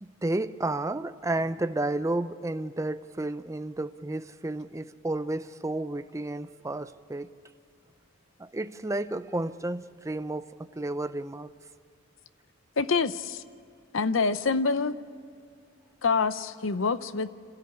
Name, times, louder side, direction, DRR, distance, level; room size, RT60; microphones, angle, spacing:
voice 1, 0.0-7.3 8.4-11.5, right 2 dB, 15° right, 0.5 m, -32 dB
voice 2, 12.8-13.4 13.9-15.0 16.0-17.3, left 4 dB, 75° left, 0.7 m, -26 dB
26.5 x 14.0 x 9.7 m
head